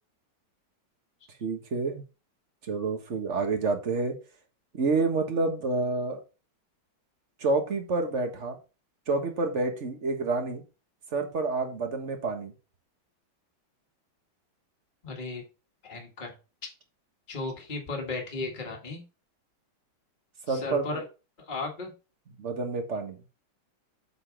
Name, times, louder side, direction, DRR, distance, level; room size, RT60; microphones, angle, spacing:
voice 1, 1.4-2.0 2.6-4.2 4.7-6.2 7.4-8.6 9.1-10.6 11.1-12.5 20.5-21.0 22.4-23.2, right 3 dB, 40° right, 5 dB, 1.5 m, -28 dB
voice 2, 15.0-15.4 15.8-16.4 17.3-19.0 20.5-21.0 21.5-21.9, left 3 dB, 25° left, 1 dB, 1.7 m, -35 dB
8.0 x 4.0 x 5.0 m, 0.31 s
omnidirectional pair, 2.3 m